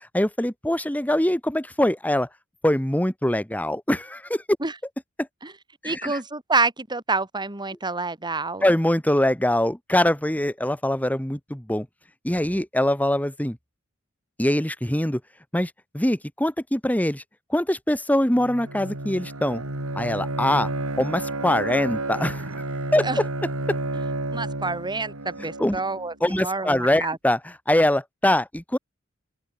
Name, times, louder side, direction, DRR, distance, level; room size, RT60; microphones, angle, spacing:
voice 1, 0.1-2.3 2.6-4.4 5.2-5.3 5.8-6.2 8.6-11.9 12.2-13.6 14.4-15.2 15.5-17.2 17.5-19.6 19.9-20.7 21.0-22.5 22.9-23.1 23.7-23.8 25.6-25.8 26.2-28.8, left 1 dB, 5° left, 1.7 m, -23 dB
voice 2, 5.8-8.7 23.0-23.2 24.3-27.2, right 3 dB, 20° right, 2.5 m, -27 dB
Bowed string instrument, 18.3-26.1, right 2 dB, 80° right, 4.1 m, -31 dB
head